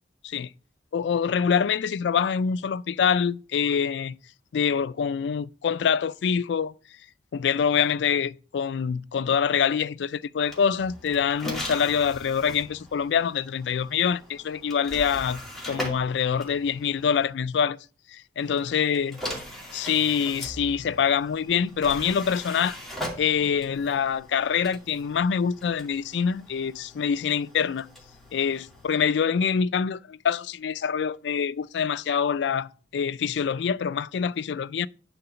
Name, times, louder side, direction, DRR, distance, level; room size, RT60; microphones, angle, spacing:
voice 1, 0.9-4.2 4.5-6.7 7.3-15.4 15.7-17.8 18.1-19.2 19.7-22.8 23.2-27.9 28.3-34.9, left 7 dB, 85° left, 0.4 m, -25 dB
sound 1, 10.4-17.3 18.4-28.9, left 1 dB, ahead, 2.3 m, -40 dB
10.5 x 3.9 x 5.6 m
head